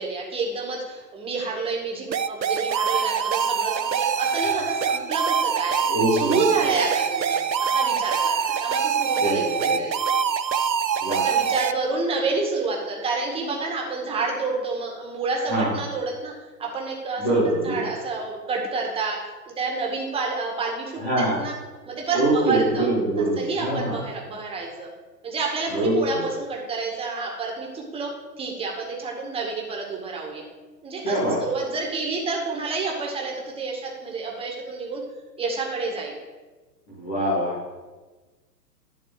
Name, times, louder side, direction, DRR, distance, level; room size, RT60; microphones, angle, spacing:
voice 1, 0.0-5.7 6.1-10.0 11.1-16.3 16.6-19.2 19.6-21.5 21.8-22.9 23.2-24.9 25.2-28.1 28.4-30.4 30.8-35.0 35.4-36.2, right 4 dB, 10° right, -1 dB, 1.8 m, -29 dB
sound 1, 2.1-11.7, right 7 dB, 90° right, 0.7 m, -24 dB
voice 2, 5.8-6.4 9.2-9.8 11.0-11.2 15.5-15.7 17.2-17.8 21.0-21.4 22.1-23.9 25.7-26.2 31.0-31.4 37.0-37.5, right 1 dB, 5° left, -9 dB, 0.4 m, -23 dB
11.0 x 4.2 x 7.6 m, 1.3 s
figure-of-eight pair, 120°, 49 cm